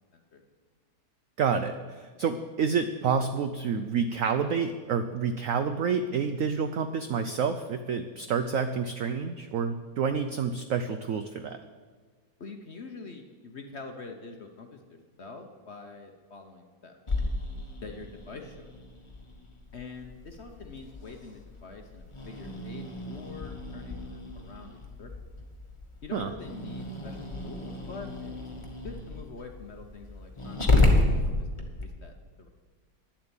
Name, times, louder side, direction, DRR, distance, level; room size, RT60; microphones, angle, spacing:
voice 1, 1.4-11.6 26.1-26.3, right 6 dB, 75° right, 9 dB, 0.7 m, -28 dB
voice 2, 12.4-17.0 17.8-18.7 19.7-25.1 26.0-28.3 28.8-32.5, left 4 dB, 50° left, 4 dB, 0.9 m, -45 dB
Growling, 17.1-31.9, left 2 dB, 20° left, 1.1 m, -31 dB
10.5 x 7.4 x 8.9 m, 1.5 s
omnidirectional pair, 2.0 m